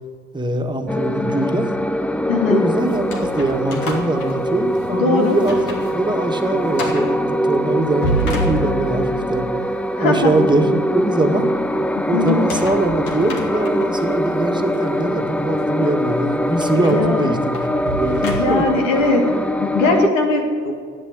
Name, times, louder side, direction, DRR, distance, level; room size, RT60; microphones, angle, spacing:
voice 1, 0.3-1.7 2.5-9.4 10.0-11.5 12.1-18.6, right 2 dB, 10° right, 5 dB, 1.8 m, -22 dB
sound 1, 0.9-20.1, equal, 5° left, 0.5 m, -22 dB
voice 2, 2.3-2.7 5.0-5.4 10.0-10.3 12.1-12.5 16.9-17.3 18.2-19.3 19.6-20.7, left 3 dB, 85° left, 3 dB, 2.3 m, -19 dB
sound 2, 2.9-4.9 5.3-5.9 6.2-6.3 6.7-7.2 7.8-9.1 12.3-14.0 14.7-14.8 16.6-18.8, equal, 65° left, 2.8 m, -29 dB
12.0 x 9.0 x 8.7 m, 2.1 s
hypercardioid pair, 65°, 38 cm